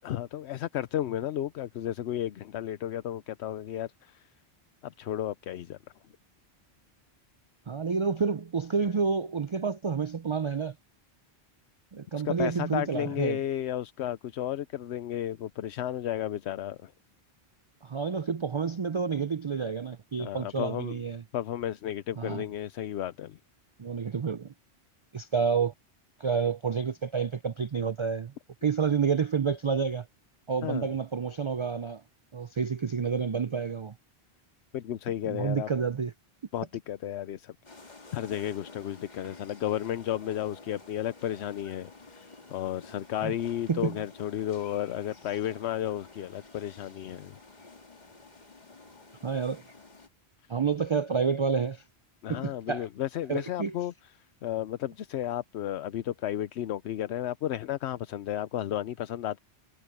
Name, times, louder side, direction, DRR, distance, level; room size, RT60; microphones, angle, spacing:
voice 1, 0.0-4.3 4.8-5.8 12.2-16.9 20.2-21.0 21.3-23.4 30.6-30.9 34.7-35.7 36.5-37.5 38.1-47.4 52.2-53.9 54.4-59.4, left 11 dB, 80° left, 0.9 m, -33 dB
voice 2, 7.7-10.7 11.9-13.4 17.8-21.2 22.2-22.4 23.8-24.5 25.1-25.7 26.2-28.3 28.6-30.1 30.5-32.0 32.3-33.9 35.2-36.1 43.2-43.3 43.7-44.0 49.2-49.6 50.5-51.8 52.3-52.9 53.3-53.7, right 6 dB, 45° right, 0.4 m, -29 dB
sound 1, 37.6-50.1, left 3 dB, 40° left, 2.2 m, -51 dB
omnidirectional pair, 1.1 m